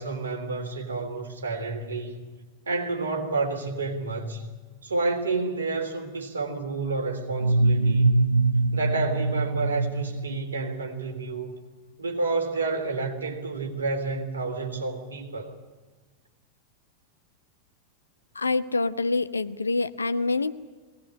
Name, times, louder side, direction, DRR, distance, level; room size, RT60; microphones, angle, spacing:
voice 1, 0.0-2.1 2.7-4.5 4.8-8.2 8.7-11.5 12.0-15.6, right 3 dB, 70° right, 2 dB, 3.5 m, -30 dB
sound 1, 7.3-11.0, right 2 dB, 85° right, 0.7 m, -23 dB
voice 2, 18.3-20.5, left 3 dB, 75° left, 13 dB, 0.8 m, -26 dB
21.5 x 18.5 x 9.7 m, 1.3 s
figure-of-eight pair, 90°, 0 cm